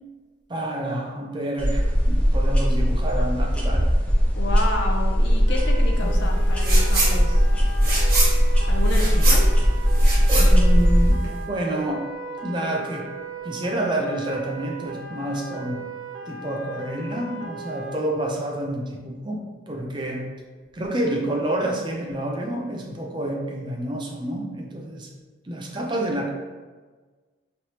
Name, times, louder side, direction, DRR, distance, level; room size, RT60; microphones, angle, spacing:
voice 1, 0.5-3.9 6.0-6.2 9.1-9.3 10.3-12.0 12.4-13.1 13.4-15.8 16.3-20.2 20.7-25.1 25.4-26.3, right 1 dB, 25° right, 0 dB, 0.5 m, -28 dB
sound 1, 1.6-11.1, equal, 5° left, 0.8 m, -19 dB
voice 2, 4.3-7.5 8.7-9.8, left 2 dB, 65° left, 1 dB, 0.5 m, -30 dB
sound 2, 5.5-18.0, right 3 dB, 80° right, 0.6 m, -37 dB
sound 3, 6.6-7.1 7.5-11.4, right 2 dB, 50° right, 1.1 m, -26 dB
4.4 x 3.2 x 2.8 m, 1.4 s
head